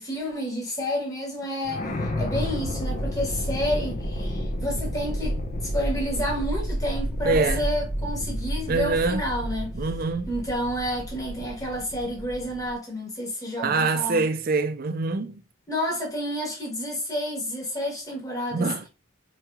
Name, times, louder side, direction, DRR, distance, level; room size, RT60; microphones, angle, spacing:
voice 1, 0.0-5.4 5.6-9.8 10.3-14.2 15.7-18.7, equal, 15° left, 1.4 m, -30 dB
sound 1, 1.6-12.7, equal, 40° left, 0.7 m, -30 dB
voice 2, 7.2-7.7 8.7-9.3 9.7-10.3 13.6-15.4 18.5-18.9, right 3 dB, 45° right, 0.4 m, -25 dB
4.5 x 3.1 x 2.3 m
head